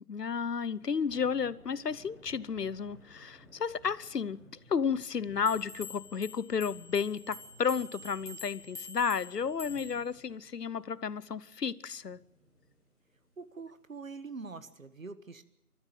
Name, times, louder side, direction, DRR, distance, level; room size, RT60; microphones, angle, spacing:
voice 1, 0.0-4.4 4.7-12.2, left 6 dB, 90° left, 1.0 m, -32 dB
Thunder / Rain, 0.7-14.7, left 1 dB, ahead, 3.3 m, -59 dB
sound 1, 5.5-10.1, left 4 dB, 30° left, 2.5 m, -47 dB
voice 2, 13.4-15.4, right 4 dB, 55° right, 1.7 m, -44 dB
28.0 x 14.0 x 7.6 m
figure-of-eight pair, 170°, 46 cm